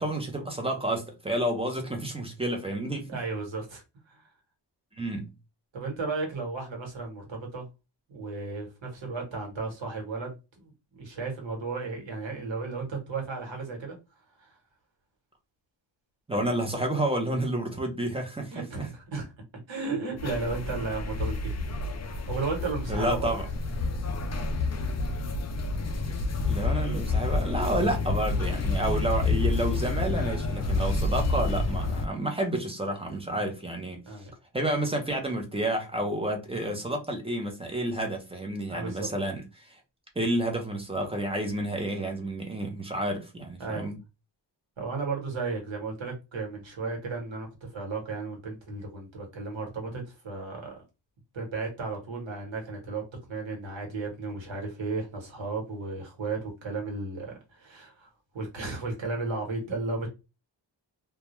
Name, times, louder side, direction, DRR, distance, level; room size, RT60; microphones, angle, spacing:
voice 1, 0.0-3.1 4.9-5.3 16.3-18.9 22.9-23.5 26.5-34.0 34.5-39.8 40.2-44.0, right 1 dB, 15° right, 0.7 m, -30 dB
voice 2, 3.1-4.2 5.7-7.7 8.1-14.0 14.4-14.5 18.5-19.3 19.7-21.6 22.3-23.3 33.3-33.4 34.1-34.3 38.7-39.1 43.6-43.9 44.8-50.8 51.3-58.1 58.3-60.1, right 3 dB, 85° right, 1.2 m, -34 dB
sound 1, 20.2-32.1, left 3 dB, 40° left, 0.5 m, -29 dB
2.3 x 2.2 x 2.9 m
wide cardioid pair, 125°, 44 cm